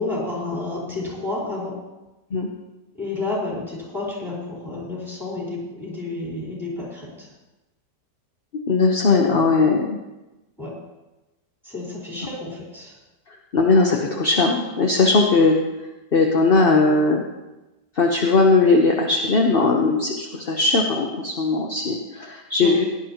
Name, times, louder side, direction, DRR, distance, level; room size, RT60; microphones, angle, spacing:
voice 1, 0.0-1.8 2.9-7.3 10.6-10.7 11.6-12.9 22.6-22.7, left 2 dB, ahead, -5 dB, 4.3 m, -30 dB
voice 2, 8.7-10.0 13.5-15.6 16.1-17.2 18.0-22.8, left 3 dB, 40° left, 1 dB, 0.9 m, -19 dB
17.5 x 10.5 x 2.9 m, 1.0 s
omnidirectional pair, 1.9 m